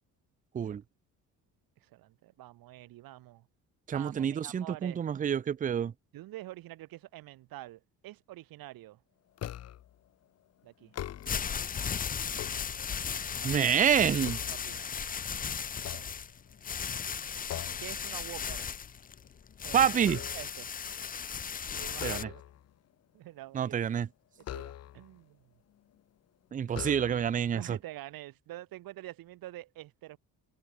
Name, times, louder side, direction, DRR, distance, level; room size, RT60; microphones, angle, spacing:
voice 1, 1.8-3.5 3.9-5.0 6.1-9.0 10.6-10.9 14.5-14.8 15.8-16.0 17.8-18.8 19.6-20.7 21.7-22.4 23.1-23.8 24.5-25.5 27.5-30.2, right 16 dB, 85° right, 1.5 m, -46 dB
voice 2, 3.9-5.9 13.4-14.4 19.7-20.2 22.0-22.3 23.5-24.1 26.5-27.8, right 8 dB, 25° right, 0.5 m, -27 dB
sound 1, 9.4-10.0 10.8-11.6 12.1-13.2 13.7-15.2 15.7-16.7 17.5-18.0 18.4-18.6 19.0-20.7 21.9-22.7 24.4-25.2 26.0-26.1 26.7-27.5, left 11 dB, 45° left, 1.0 m, -43 dB
sound 2, 11.1-22.2, left 7 dB, 25° left, 0.7 m, -36 dB
open air
cardioid pair, 170°, 34 cm